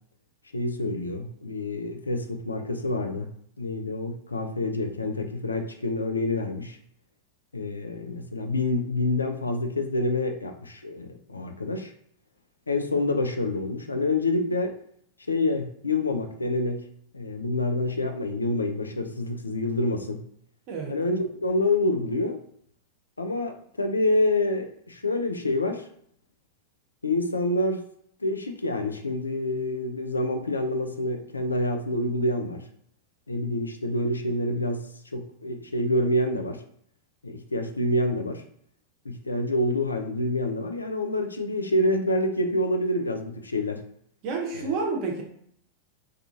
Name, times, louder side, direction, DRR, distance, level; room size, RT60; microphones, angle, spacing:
voice 1, 0.5-3.3 3.6-6.8 7.5-11.9 12.7-14.7 15.3-16.8 17.1-20.2 20.9-22.4 23.2-25.8 27.0-27.8 28.2-32.6 33.3-34.8 35.1-36.6 37.2-38.4 39.1-43.8 44.5-44.7, left 1 dB, 80° left, 5 dB, 0.3 m, -27 dB
voice 2, 44.2-45.2, right 4 dB, 40° right, 0 dB, 0.7 m, -29 dB
2.4 x 2.3 x 2.7 m, 0.67 s
figure-of-eight pair, 90°, 0 cm